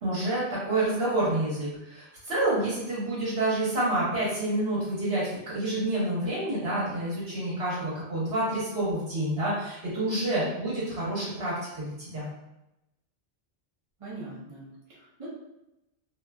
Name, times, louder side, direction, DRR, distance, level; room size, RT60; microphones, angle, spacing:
voice 1, 0.0-12.3, right 1 dB, 60° right, -8 dB, 1.3 m, -28 dB
voice 2, 14.0-15.3, right 2 dB, 35° right, -7 dB, 0.6 m, -42 dB
2.7 x 2.3 x 2.2 m, 0.92 s
omnidirectional pair, 1.2 m